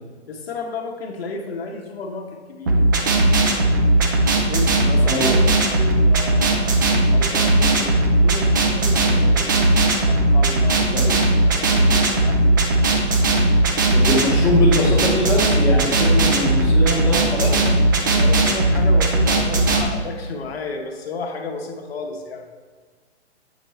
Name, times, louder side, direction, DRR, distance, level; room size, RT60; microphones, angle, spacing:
voice 1, 0.3-2.8 4.4-5.3 5.7-6.8 7.1-9.7 10.1-12.6 18.0-22.5, left 3 dB, 60° left, 3 dB, 1.0 m, -32 dB
sound 1, 2.7-19.8, right 2 dB, 20° right, 0.3 m, -17 dB
voice 2, 4.9-5.3 10.9-11.0 13.9-17.7, left 2 dB, 10° left, -5 dB, 0.8 m, -22 dB
7.6 x 4.4 x 3.1 m, 1.5 s
figure-of-eight pair, 125°, 34 cm